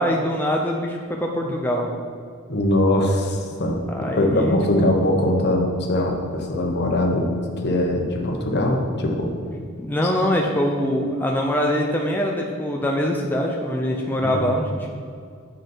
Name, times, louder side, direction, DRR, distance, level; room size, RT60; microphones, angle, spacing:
voice 1, 0.0-2.0 3.5-3.6 3.9-4.9 9.8-14.6, equal, 10° left, -1 dB, 0.5 m, -23 dB
voice 2, 2.5-9.3 14.2-14.4, left 1 dB, 50° left, 1 dB, 1.1 m, -22 dB
8.3 x 6.4 x 4.4 m, 2.2 s
head